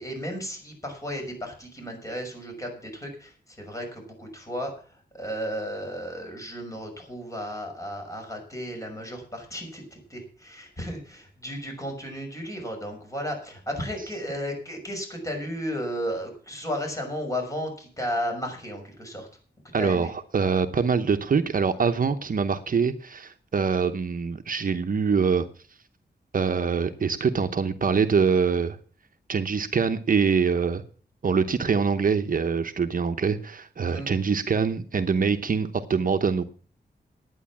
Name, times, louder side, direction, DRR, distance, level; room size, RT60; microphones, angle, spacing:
voice 1, 0.0-4.7 5.1-19.3 19.8-20.1 33.8-34.1, equal, 20° left, 2 dB, 6.1 m, -34 dB
voice 2, 19.7-25.5 26.3-28.8 29.3-30.8 31.2-36.4, right 5 dB, 55° right, 8 dB, 0.9 m, -24 dB
11.0 x 9.4 x 7.3 m, 0.42 s
wide cardioid pair, 85°, 17 cm